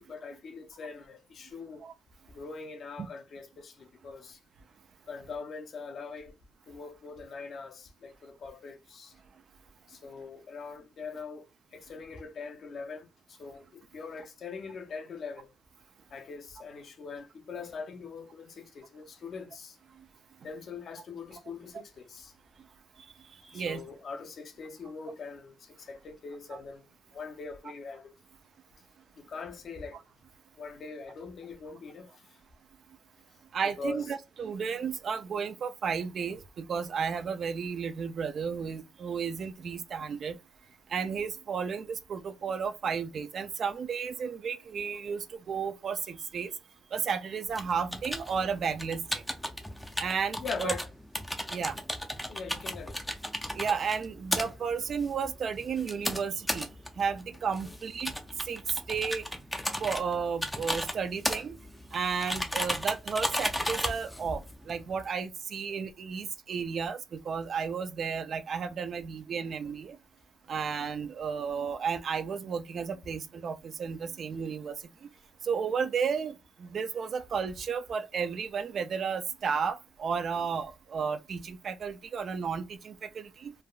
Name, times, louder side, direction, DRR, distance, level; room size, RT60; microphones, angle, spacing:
voice 1, 0.0-1.8 2.3-4.4 5.1-6.3 6.7-9.1 9.9-11.5 11.7-15.5 16.1-19.8 20.4-22.3 23.4-26.8 27.1-28.1 29.1-30.0 30.6-32.1 33.6-34.1 50.4-50.9 51.7-51.8 52.2-53.0 57.6-57.7 70.8-70.9, left 4 dB, 55° left, 0.6 m, -42 dB
voice 2, 33.5-40.4 40.9-46.5 46.9-49.2 50.0-50.7 51.5-51.8 53.6-56.7 57.0-58.1 58.5-59.2 59.8-61.5 61.9-70.0 70.5-74.7 75.0-75.1 75.4-83.5, right 6 dB, 55° right, 0.4 m, -33 dB
sound 1, 47.5-65.1, equal, 5° left, 0.5 m, -35 dB
3.3 x 2.2 x 2.3 m
cardioid pair, 105°, 0 cm